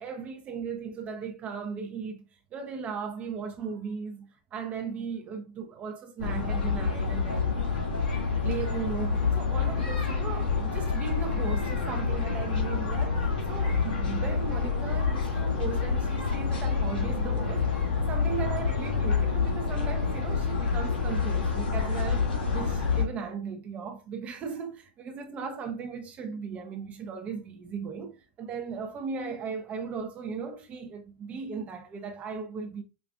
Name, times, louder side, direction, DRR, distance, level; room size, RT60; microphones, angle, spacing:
voice 1, 0.0-7.6 8.4-32.8, right 6 dB, 30° right, 0.5 m, -37 dB
sound 1, 6.2-23.0, left 5 dB, 80° left, 1.7 m, -27 dB
5.0 x 2.4 x 2.2 m
hypercardioid pair, 115°, 5 cm